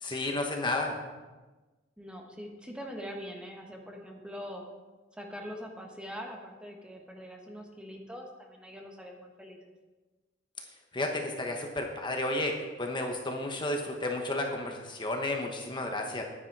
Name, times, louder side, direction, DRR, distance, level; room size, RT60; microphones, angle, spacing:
voice 1, 0.0-1.0 10.9-16.2, left 2 dB, 25° left, 2 dB, 1.0 m, -32 dB
voice 2, 2.0-4.6 5.1-9.7, equal, 5° right, 1 dB, 1.3 m, -43 dB
10.5 x 9.7 x 4.7 m, 1.2 s
head